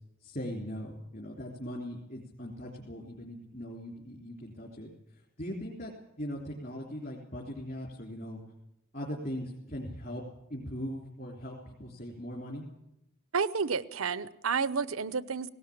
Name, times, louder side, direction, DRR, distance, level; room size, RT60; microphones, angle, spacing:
voice 1, 0.2-8.4 8.9-10.2 10.5-12.7, equal, 45° left, -2 dB, 3.4 m, -40 dB
voice 2, 13.3-15.5, right 5 dB, 85° right, 17 dB, 0.8 m, -30 dB
18.5 x 18.0 x 8.6 m, 0.84 s
head